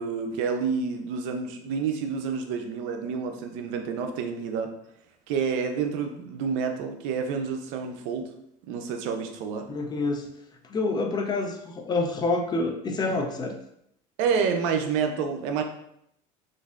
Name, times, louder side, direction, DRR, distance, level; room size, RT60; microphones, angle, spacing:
voice 1, 0.0-4.7 5.3-8.3 8.6-9.7 14.2-15.6, right 6 dB, 75° right, 5 dB, 0.5 m, -28 dB
voice 2, 9.7-10.3 10.6-13.6, left 3 dB, 25° left, 4 dB, 0.4 m, -27 dB
3.1 x 2.5 x 2.4 m, 0.74 s
supercardioid pair, 110°, 16 cm